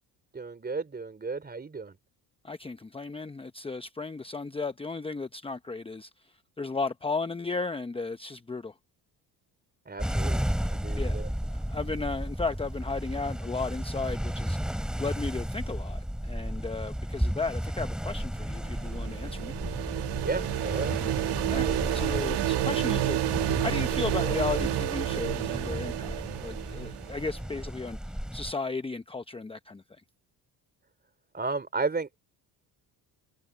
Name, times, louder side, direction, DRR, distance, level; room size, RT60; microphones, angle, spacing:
voice 1, 0.3-2.0 9.9-11.4 20.2-20.9 21.2-21.9 31.3-32.1, right 4 dB, 25° right, 3.5 m, -34 dB
voice 2, 2.4-6.1 6.6-8.7 11.0-11.2 11.7-19.5 21.5-23.2 23.6-29.8, left 3 dB, 15° left, 0.9 m, -34 dB
sound 1, 10.0-28.5, equal, ahead, 6.9 m, -33 dB
sound 2, 18.5-27.3, right 15 dB, 80° right, 1.7 m, -30 dB
cardioid pair, 95°, 40 cm